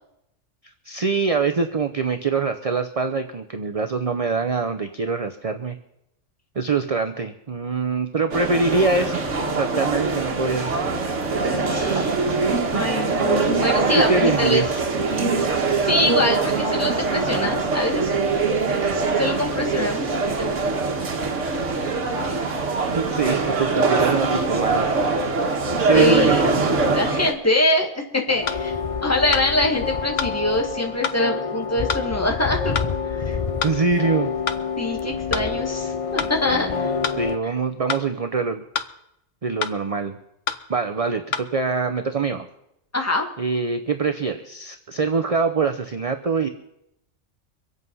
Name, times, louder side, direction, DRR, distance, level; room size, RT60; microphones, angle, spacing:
voice 1, 0.8-5.8 6.6-9.2 9.5-10.9 11.9-12.0 12.7-12.9 14.0-14.7 23.0-24.9 25.9-26.4 33.6-34.3 35.9-36.0 36.5-36.9 37.2-38.6 39.4-40.2 40.7-42.5 43.4-46.5, right 4 dB, 35° right, 7 dB, 0.7 m, -24 dB
sound 1, 8.3-27.3, right 3 dB, 70° right, 1.8 m, -23 dB
voice 2, 11.6-12.2 12.7-14.6 15.8-18.1 18.7-20.8 25.9-26.5 26.9-28.7 29.0-32.8 33.1-33.4 34.8-36.9 42.9-43.3, left 1 dB, 10° left, 1 dB, 1.8 m, -24 dB
sound 2, 28.3-37.4, left 6 dB, 35° left, 0.6 m, -28 dB
sound 3, 28.5-28.6 29.3-29.5 30.2-30.4 31.0-31.2 31.9-32.1 32.8-32.9 33.6-33.8 34.5-34.6 35.3-35.5 36.2-36.3 37.0-37.2 37.9-38.1 38.8-38.9 39.6-39.8 40.5-40.6 41.3-41.5, left 7 dB, 70° left, 1.2 m, -27 dB
24.5 x 8.3 x 5.5 m, 0.81 s
omnidirectional pair, 1.3 m